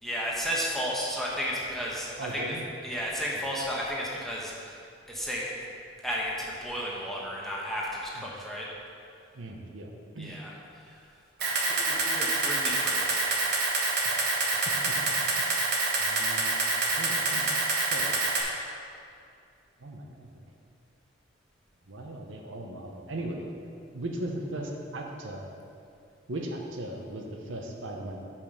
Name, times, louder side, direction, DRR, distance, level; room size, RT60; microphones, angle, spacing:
voice 1, 0.0-2.6 2.8-4.8 5.1-5.5 6.0-8.7 10.2-11.0 11.7-13.4 14.5-14.8, equal, ahead, -5 dB, 1.0 m, -33 dB
voice 2, 2.2-2.6 8.2-8.3 9.3-10.4 11.5-11.6 14.0-14.2 14.9-15.0 15.3-15.6 16.0-16.5 17.0-17.5 17.9-18.1 19.8-20.4 21.9-23.4 23.9-25.4 26.3-28.2, right 1 dB, 80° right, 1 dB, 0.8 m, -38 dB
Camera, 11.4-18.4, right 3 dB, 55° right, 1.1 m, -27 dB
5.6 x 5.2 x 6.4 m, 2.5 s
head